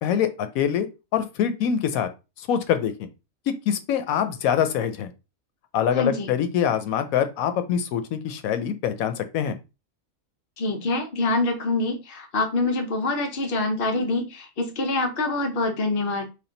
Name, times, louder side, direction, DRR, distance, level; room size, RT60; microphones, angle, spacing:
voice 1, 0.0-2.1 2.4-3.1 3.5-5.1 5.7-9.5, left 8 dB, 90° left, 9 dB, 1.1 m, -24 dB
voice 2, 5.9-6.3 10.6-16.3, left 2 dB, 45° left, 3 dB, 1.0 m, -25 dB
3.5 x 2.5 x 3.8 m, 0.28 s
omnidirectional pair, 1.4 m